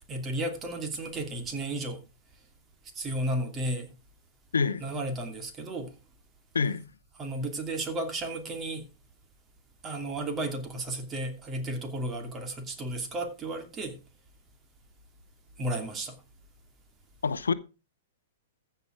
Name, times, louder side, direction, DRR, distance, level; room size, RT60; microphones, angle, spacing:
voice 1, 0.1-2.0 2.9-3.9 4.8-5.9 7.2-8.8 9.8-13.9 15.6-16.1, right 1 dB, 25° right, 2.7 m, -33 dB
voice 2, 4.5-4.9 6.5-6.9 17.2-17.5, left 5 dB, 80° left, 0.8 m, -26 dB
15.0 x 5.8 x 4.9 m
hypercardioid pair, 115°, 0 cm